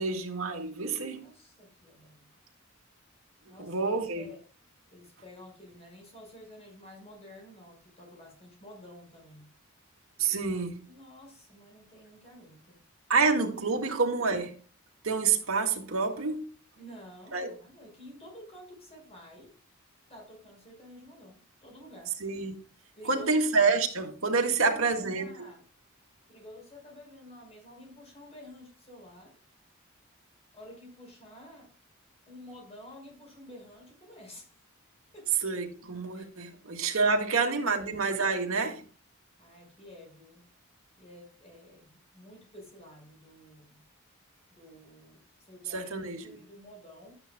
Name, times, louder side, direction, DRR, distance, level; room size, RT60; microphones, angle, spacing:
voice 1, 0.0-1.2 3.6-4.3 10.2-10.8 13.1-14.6 15.0-16.5 17.3-17.5 22.2-22.6 23.0-25.3 35.4-38.8 45.7-46.4, right 4 dB, 85° right, 1.9 m, -28 dB
voice 2, 1.2-2.3 3.5-4.4 4.9-9.5 10.9-12.8 13.3-13.4 13.7-13.8 16.8-19.5 20.1-22.2 23.0-23.5 24.4-25.6 26.3-29.4 30.5-31.7 32.2-34.5 35.1-35.3 36.1-36.3 37.0-37.1 37.4-37.6 39.4-40.4 41.0-43.8 44.5-47.2, left 1 dB, 30° left, 5.6 m, -50 dB
12.5 x 9.7 x 2.3 m
head